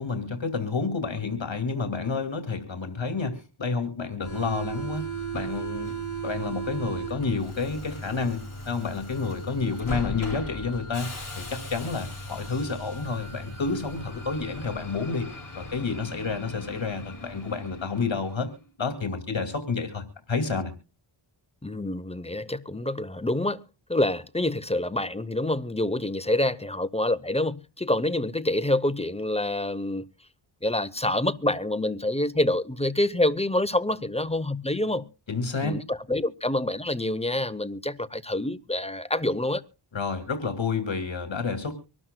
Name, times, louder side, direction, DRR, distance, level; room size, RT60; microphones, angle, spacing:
voice 1, 0.0-5.0 5.3-11.1 11.4-15.3 15.5-18.5 18.8-20.7 35.3-35.8 39.9-41.7, left 4 dB, 65° left, 2.4 m, -30 dB
Subway metro underground, 4.2-18.6, right 2 dB, 40° left, 5.6 m, -37 dB
voice 2, 21.6-23.6 23.9-30.0 30.6-35.0 35.6-39.6, left 1 dB, 15° left, 0.7 m, -27 dB
25.0 x 12.5 x 2.2 m
wide cardioid pair, 65°, 50 cm